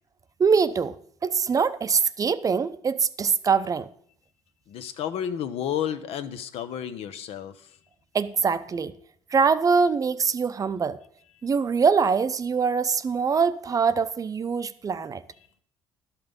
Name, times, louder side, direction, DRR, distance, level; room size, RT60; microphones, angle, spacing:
voice 1, 0.4-1.0 1.2-3.9 8.1-8.9 9.3-11.0 11.4-15.2, right 5 dB, 35° right, 0.6 m, -23 dB
voice 2, 4.7-7.5 11.4-11.5, left 9 dB, 75° left, 0.8 m, -31 dB
11.5 x 5.8 x 5.2 m
cardioid pair, 90°, 10 cm